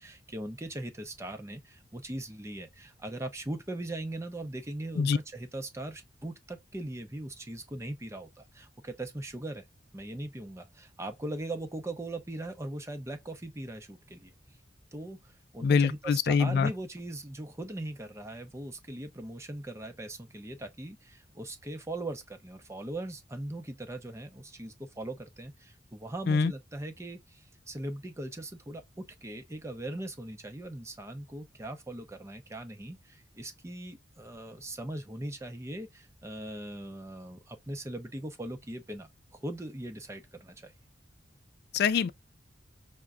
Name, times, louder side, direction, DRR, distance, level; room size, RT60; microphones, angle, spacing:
voice 1, 0.0-9.6 9.9-14.3 14.9-40.7, right 1 dB, 15° right, 0.6 m, -40 dB
voice 2, 15.6-16.7 26.3-26.5 41.7-42.1, left 5 dB, 60° left, 0.3 m, -24 dB
5.7 x 2.2 x 2.4 m
head